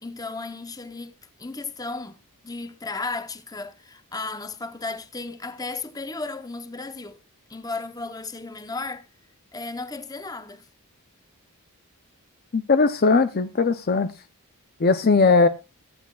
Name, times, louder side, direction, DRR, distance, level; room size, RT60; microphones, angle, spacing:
voice 1, 0.0-7.2 7.5-9.1 9.5-10.7, left 3 dB, 15° left, 0.8 m, -34 dB
voice 2, 12.5-14.1 14.8-15.5, left 4 dB, 45° left, 0.5 m, -19 dB
22.5 x 8.4 x 2.4 m
head